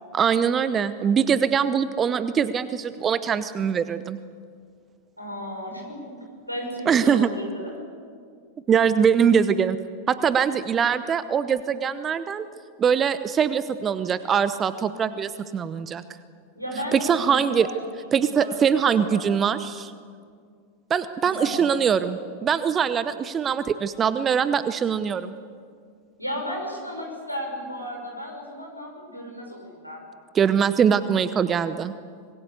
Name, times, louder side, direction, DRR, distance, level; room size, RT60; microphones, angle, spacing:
voice 1, 0.1-4.2 6.9-7.3 8.7-9.8 10.1-12.5 12.8-16.0 16.9-17.7 18.1-19.9 20.9-25.3 30.3-31.9, right 7 dB, 25° right, 14 dB, 0.8 m, -22 dB
voice 2, 5.2-6.0 6.5-7.9 16.6-19.2 21.2-21.6 26.2-30.0, equal, 90° right, 1 dB, 5.9 m, -34 dB
25.5 x 21.0 x 8.1 m, 2.1 s
figure-of-eight pair, 90°, 0 cm